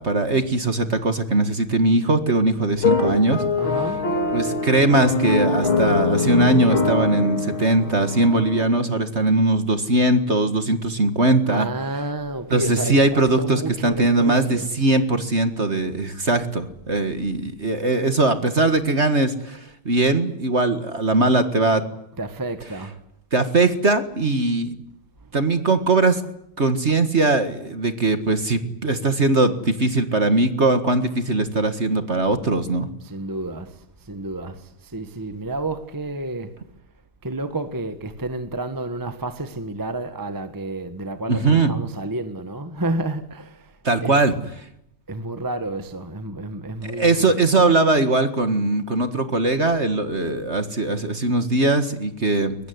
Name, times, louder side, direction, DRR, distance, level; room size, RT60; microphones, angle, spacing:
voice 1, 0.0-3.4 4.3-11.7 12.5-21.8 23.3-24.8 25.3-26.2 26.6-32.9 41.3-41.7 43.8-44.3 46.8-52.6, right 2 dB, 35° right, 1.8 m, -20 dB
sound 1, 2.8-8.6, left 4 dB, 65° left, 3.9 m, -23 dB
voice 2, 3.6-4.0 11.5-14.8 22.2-22.9 33.0-33.7 34.1-36.5 37.2-43.7 44.0-44.2 45.1-47.3, right 2 dB, 10° right, 1.3 m, -30 dB
23.0 x 20.5 x 9.6 m
omnidirectional pair, 2.4 m